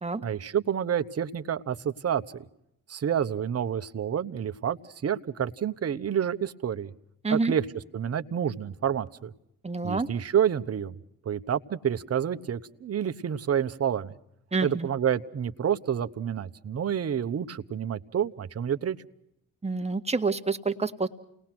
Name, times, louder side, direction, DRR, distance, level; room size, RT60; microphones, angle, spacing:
voice 1, 0.2-2.2 2.9-6.9 7.3-9.3 9.8-11.0 11.2-14.1 14.6-19.0, right 8 dB, 40° right, 10 dB, 1.0 m, -29 dB
voice 2, 9.6-10.1 14.5-14.9 19.6-21.1, right 4 dB, 15° right, 6 dB, 1.6 m, -27 dB
29.5 x 19.5 x 6.1 m, 0.78 s
cardioid pair, 90°, 37 cm